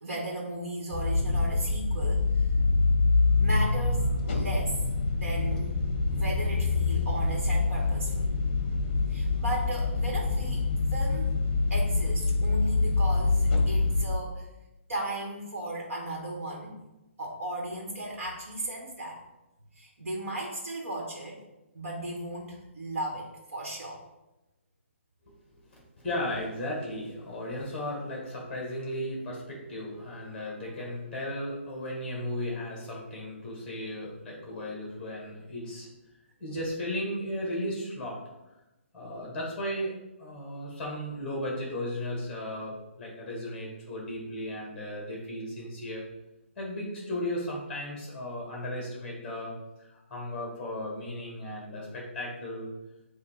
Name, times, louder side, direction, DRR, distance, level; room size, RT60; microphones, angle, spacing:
voice 1, 0.0-2.4 3.4-4.8 5.1-5.8 6.1-8.3 9.1-11.3 11.7-14.5 14.9-16.8 17.2-19.2 19.7-21.4 21.7-24.0, right 1 dB, 90° right, -2 dB, 1.7 m, -36 dB
sound 1, 0.9-14.1, left 3 dB, 30° left, 0.8 m, -26 dB
voice 2, 26.0-35.9 36.4-38.2 38.9-39.9 40.2-46.0 46.6-52.7, left 1 dB, 5° left, -2 dB, 1.2 m, -35 dB
8.2 x 2.8 x 4.8 m, 0.99 s
hypercardioid pair, 175°, 7 cm